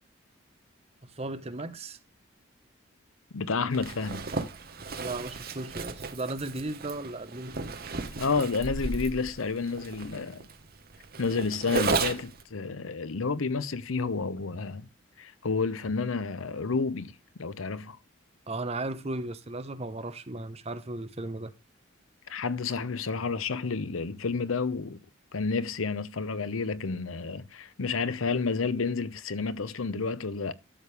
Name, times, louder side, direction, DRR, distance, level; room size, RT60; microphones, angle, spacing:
voice 1, 1.2-2.0 3.5-3.7 5.0-7.6 18.5-21.5, right 2 dB, 30° right, 1.0 m, -36 dB
voice 2, 3.3-4.2 8.2-10.5 11.2-14.9 15.2-17.1 17.4-18.0 22.3-25.0 25.3-30.5, left 4 dB, 75° left, 0.8 m, -30 dB
Zipper (clothing), 3.7-12.4, right 4 dB, 45° right, 1.2 m, -34 dB
12.5 x 6.7 x 3.4 m
head